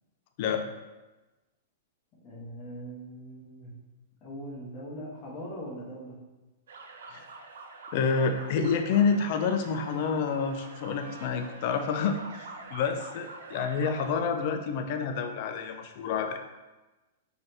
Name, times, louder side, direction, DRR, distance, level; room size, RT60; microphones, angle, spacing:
voice 1, 2.2-3.7 4.2-6.1, equal, 30° left, -5 dB, 1.2 m, -41 dB
sound 1, 6.7-14.1, right 3 dB, 80° right, 0.4 m, -46 dB
voice 2, 7.9-12.2 12.7-16.4, left 5 dB, 50° left, 7 dB, 0.4 m, -28 dB
4.0 x 3.2 x 2.8 m, 1.1 s
hypercardioid pair, 140°, 0 cm